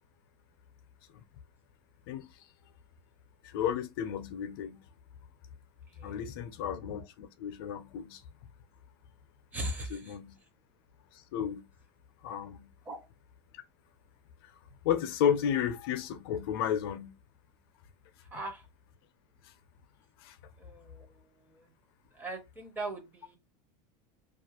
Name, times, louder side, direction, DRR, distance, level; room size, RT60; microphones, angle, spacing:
voice 1, 2.1-2.5 3.4-4.8 6.0-8.2 9.9-10.3 11.1-11.7 12.2-12.7 14.4-14.5 14.8-17.2 19.4-19.5 20.2-20.4, left 9 dB, 65° left, 0.5 m, -33 dB
voice 2, 5.9-6.2 9.5-10.2 12.9-13.0 18.3-18.6 20.6-21.7 22.1-23.4, right 1 dB, 10° right, 0.5 m, -40 dB
2.4 x 2.4 x 2.8 m
supercardioid pair, 175°, 13 cm